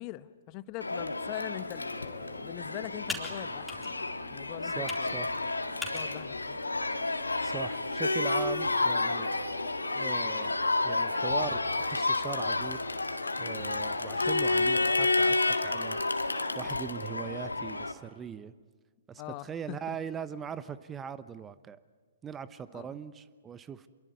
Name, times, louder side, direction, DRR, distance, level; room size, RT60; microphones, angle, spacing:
voice 1, 0.0-4.1 4.3-5.2 5.9-6.6 19.2-20.0 22.7-22.9, left 16 dB, 35° left, 1.0 m, -42 dB
Crowd, 0.8-17.9, left 2 dB, 90° left, 1.8 m, -30 dB
Computer keyboard, 1.7-8.4, left 2 dB, 5° left, 3.8 m, -45 dB
voice 2, 4.6-5.3 7.4-9.3 9.9-12.8 13.4-16.0 16.6-18.5 19.1-21.8 22.2-23.9, right 7 dB, 15° right, 0.9 m, -40 dB
27.0 x 22.5 x 9.5 m
figure-of-eight pair, 120°, 0 cm